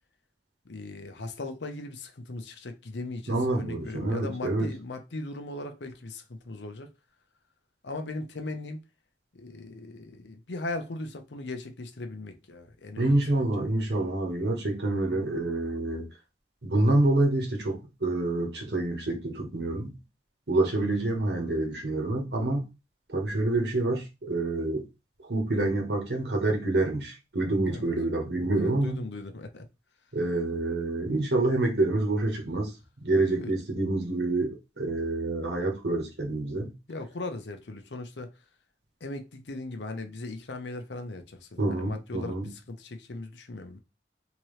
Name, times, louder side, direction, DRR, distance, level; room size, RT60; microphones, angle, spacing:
voice 1, 0.7-6.9 7.8-8.8 9.3-13.5 15.1-15.4 20.7-20.8 27.7-27.9 28.5-29.7 33.3-33.5 36.9-38.3 39.0-43.8, left 2 dB, 90° left, 0.7 m, -38 dB
voice 2, 3.3-4.7 13.0-16.1 16.6-19.9 20.5-22.7 23.1-24.8 25.2-29.0 30.1-32.7 33.0-36.7 41.6-42.5, right 2 dB, 75° right, 1.2 m, -27 dB
3.6 x 3.0 x 3.1 m
head